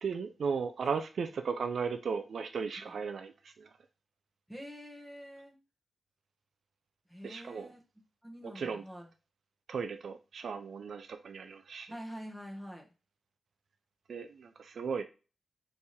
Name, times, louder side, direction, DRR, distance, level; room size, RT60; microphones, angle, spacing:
voice 1, 0.0-3.7 7.2-7.7 8.4-8.8 9.7-11.9 14.1-15.0, right 5 dB, 65° right, 7 dB, 0.4 m, -36 dB
voice 2, 4.5-5.5 7.1-7.8 8.2-9.1 11.9-12.9, equal, ahead, -1 dB, 1.3 m, -46 dB
3.4 x 3.2 x 4.2 m, 0.32 s
wide cardioid pair, 110°, 0 cm